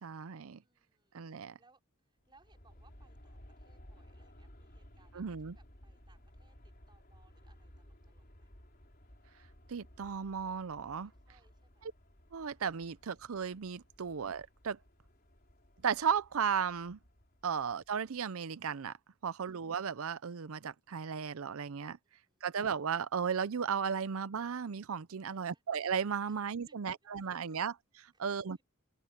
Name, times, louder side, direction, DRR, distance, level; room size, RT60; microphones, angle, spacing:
voice 1, 0.0-0.6 1.1-1.5 5.1-5.6 9.7-11.1 11.8-11.9 12.3-14.8 15.8-17.0 17.4-18.9 19.2-22.0 22.4-28.6, right 7 dB, 70° right, 0.5 m, -35 dB
voice 2, 0.6-1.8 2.1-6.6 6.9-8.5 11.0-11.9 22.0-22.5 25.2-25.6 26.2-26.4 26.6-26.9 27.2-27.6 28.1-28.6, right 3 dB, 20° right, 5.0 m, -70 dB
Aircraft, 2.2-18.3, equal, 40° left, 3.8 m, -58 dB
open air
head